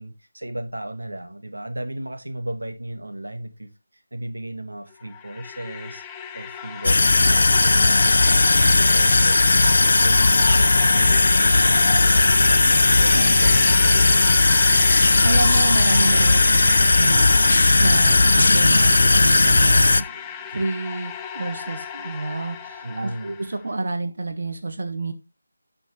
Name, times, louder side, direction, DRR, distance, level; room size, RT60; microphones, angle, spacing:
voice 1, 0.0-6.0 6.3-14.5 22.8-23.4, right 1 dB, 90° right, 1.6 m, -35 dB
sound 1, 4.9-23.6, left 7 dB, 10° left, 0.6 m, -34 dB
sound 2, 6.8-20.0, left 3 dB, 60° left, 0.5 m, -16 dB
sound 3, 9.6-20.9, right 2 dB, 30° right, 1.7 m, -41 dB
voice 2, 15.2-20.0 20.5-25.1, right 3 dB, 60° right, 1.5 m, -29 dB
11.0 x 6.1 x 3.2 m
figure-of-eight pair, 165°, 0 cm